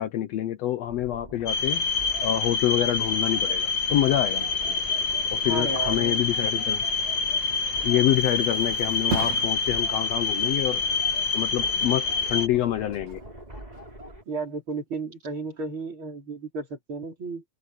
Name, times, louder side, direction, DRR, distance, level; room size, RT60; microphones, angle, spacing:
voice 1, 0.0-1.8 2.2-4.5 5.3-6.8 7.8-10.8 11.3-13.2, left 13 dB, 70° left, 1.8 m, -26 dB
sound 1, 0.9-14.2, right 1 dB, 10° right, 5.5 m, -44 dB
sound 2, 1.5-12.5, left 4 dB, 45° left, 2.0 m, -26 dB
voice 2, 5.4-6.3 14.3-17.4, right 3 dB, 45° right, 5.2 m, -33 dB
Thump thud, 7.5-15.0 15.4-15.8, right 5 dB, 70° right, 3.9 m, -40 dB
omnidirectional pair, 3.4 m